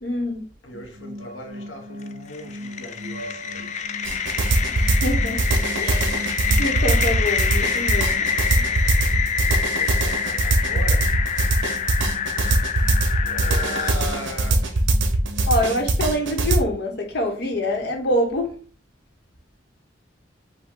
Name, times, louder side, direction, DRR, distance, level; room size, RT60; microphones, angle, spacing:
voice 1, 0.0-0.4 4.6-8.3 8.5-8.6 15.5-18.5, equal, 60° left, 1.1 m, -26 dB
voice 2, 0.6-3.7 9.7-11.2 13.2-15.0, left 1 dB, 80° left, 1.0 m, -37 dB
sound 1, 0.7-15.9, equal, 40° right, 2.1 m, -40 dB
sound 2, 2.0-13.9, left 7 dB, 40° left, 0.3 m, -26 dB
sound 3, 4.0-16.6, right 2 dB, 80° right, 0.8 m, -21 dB
5.4 x 2.3 x 3.7 m
head